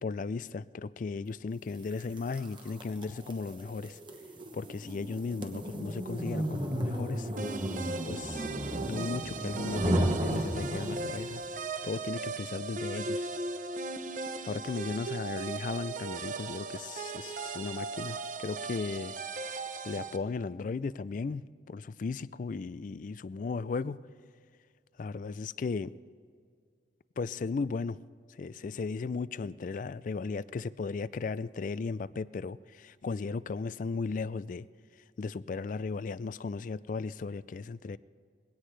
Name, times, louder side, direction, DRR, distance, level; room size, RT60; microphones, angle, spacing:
voice 1, 0.0-4.0 4.5-7.3 8.1-8.5 8.8-11.4 11.8-13.3 14.4-19.2 19.8-24.0 25.0-26.0 27.2-28.0 28.3-34.7 35.2-38.0, left 4 dB, 45° left, 17 dB, 0.3 m, -36 dB
sound 1, 2.0-11.4, right 1 dB, 25° right, 1.1 m, -34 dB
sound 2, 7.4-20.2, right 4 dB, 45° right, 0.7 m, -38 dB
21.5 x 17.5 x 3.3 m, 2.1 s
head